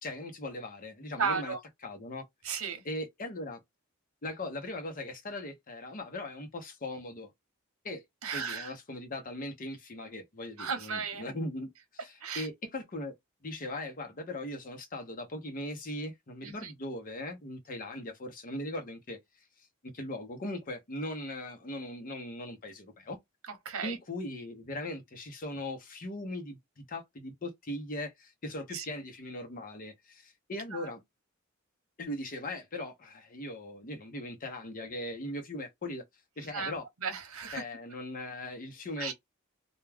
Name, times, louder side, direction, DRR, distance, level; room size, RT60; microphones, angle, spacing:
voice 1, 0.0-1.5 1.8-2.2 2.9-3.6 4.2-7.3 7.8-8.0 8.3-13.1 13.4-19.2 19.8-23.2 23.8-31.0 32.0-36.0 36.4-36.9 37.5-39.1, left 1 dB, 40° left, 0.7 m, -39 dB
voice 2, 1.2-1.6 2.4-2.8 8.2-8.7 10.6-11.2 12.2-12.5 16.4-16.7 23.5-24.0 28.7-28.8 30.7-30.9 36.4-37.6 39.0-39.1, right 5 dB, 90° right, 0.8 m, -35 dB
2.2 x 2.2 x 3.3 m
head